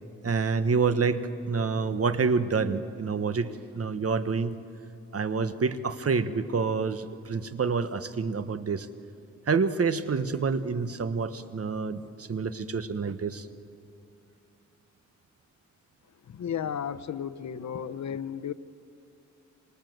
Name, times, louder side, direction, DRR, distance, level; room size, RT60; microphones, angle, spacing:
voice 1, 0.2-4.6 5.1-8.9 9.5-13.5, right 5 dB, 55° right, 11 dB, 1.4 m, -28 dB
voice 2, 16.3-18.5, left 8 dB, 70° left, 14 dB, 0.9 m, -33 dB
27.0 x 27.0 x 7.9 m, 2.6 s
cardioid pair, 85°, 29 cm